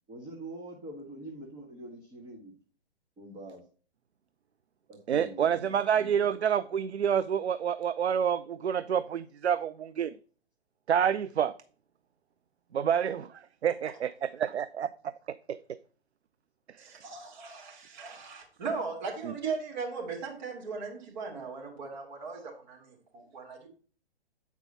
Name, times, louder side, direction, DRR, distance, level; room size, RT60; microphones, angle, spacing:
voice 1, 0.1-2.5 3.2-3.6 4.9-6.1, right 1 dB, 15° right, -2 dB, 1.2 m, -44 dB
voice 2, 5.1-10.1 10.9-11.5 12.7-13.3 13.6-14.9, right 8 dB, 80° right, 14 dB, 0.5 m, -28 dB
voice 3, 16.8-23.7, right 4 dB, 45° right, 0 dB, 2.8 m, -38 dB
8.3 x 4.7 x 4.0 m, 0.41 s
figure-of-eight pair, 125°, 33 cm